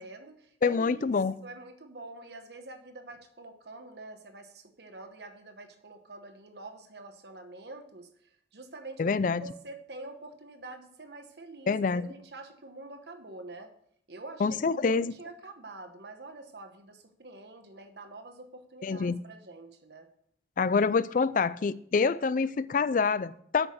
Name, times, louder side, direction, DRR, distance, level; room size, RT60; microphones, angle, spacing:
voice 1, 0.0-1.1 1.4-13.7 14.1-20.1, right 2 dB, 65° right, 1.2 m, -46 dB
voice 2, 0.6-1.3 9.0-9.4 11.7-12.1 14.4-15.1 18.8-19.2 20.6-23.7, left 5 dB, 50° left, 0.4 m, -26 dB
8.9 x 6.3 x 6.5 m
head